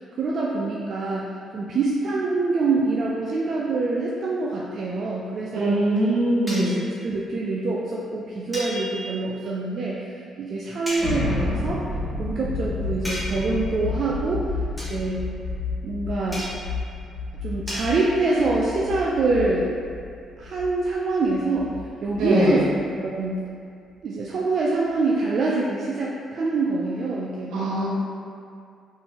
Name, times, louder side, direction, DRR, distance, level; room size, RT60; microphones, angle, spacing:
voice 1, 0.0-5.8 6.4-11.8 12.2-14.4 14.9-15.3 15.8-16.4 17.4-19.7 20.4-21.7 22.0-22.7 23.0-23.5 24.0-27.9, right 3 dB, 55° right, -4 dB, 0.3 m, -25 dB
voice 2, 5.5-6.8 22.1-22.6 27.5-27.9, right 1 dB, 85° right, -6 dB, 0.9 m, -22 dB
sound 1, 6.5-6.8 8.5-9.3 10.9-11.2 13.0-13.6 14.8-15.0 16.3-16.8 17.7-17.9, equal, 5° left, 1.0 m, -33 dB
sound 2, 11.0-22.8, left 3 dB, 25° right, 1.4 m, -31 dB
3.6 x 2.5 x 2.8 m, 2.3 s
cardioid pair, 90°, 0 cm